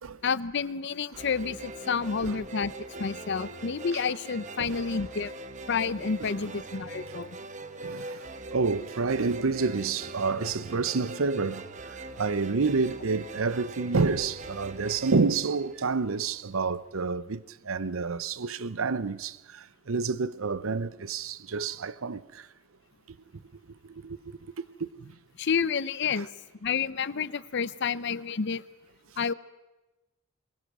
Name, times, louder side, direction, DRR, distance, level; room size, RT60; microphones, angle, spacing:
voice 1, 0.2-2.7 3.0-5.3 5.7-7.4 25.4-26.3 26.6-28.6 29.2-29.3, left 5 dB, 60° left, 0.6 m, -29 dB
sound 1, 1.1-16.4, right 2 dB, 35° right, 1.1 m, -42 dB
voice 2, 7.8-22.5 23.9-24.2 24.8-25.1, right 4 dB, 90° right, 0.7 m, -29 dB
23.0 x 21.0 x 6.2 m
head